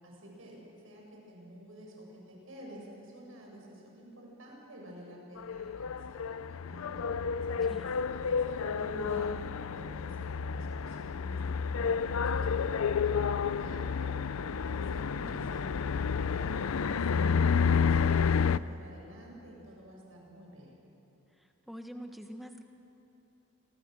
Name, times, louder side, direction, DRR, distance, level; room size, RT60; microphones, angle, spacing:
voice 1, 0.0-7.0 7.5-9.4 9.7-11.4 11.8-14.2 14.6-20.7, right 1 dB, 75° right, -1 dB, 7.2 m, -49 dB
sound 1, 5.4-18.6, left 6 dB, 85° left, 0.5 m, -30 dB
voice 2, 21.7-22.6, equal, ahead, 4 dB, 1.4 m, -44 dB
28.5 x 24.0 x 6.5 m, 2.8 s
head